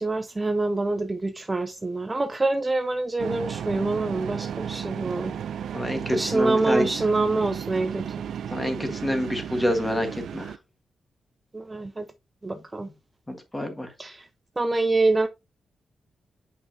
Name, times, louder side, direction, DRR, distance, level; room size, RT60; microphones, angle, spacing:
voice 1, 0.0-5.3 6.1-8.1 11.5-12.1 12.4-12.9 14.0-14.3 14.6-15.3, right 2 dB, 15° right, 0.5 m, -26 dB
sound 1, 3.2-10.6, right 8 dB, 80° right, 0.4 m, -34 dB
voice 2, 5.7-6.9 8.5-10.5 13.3-13.9, equal, 10° left, 1.5 m, -27 dB
8.6 x 5.4 x 2.8 m
wide cardioid pair, 170°, 0 cm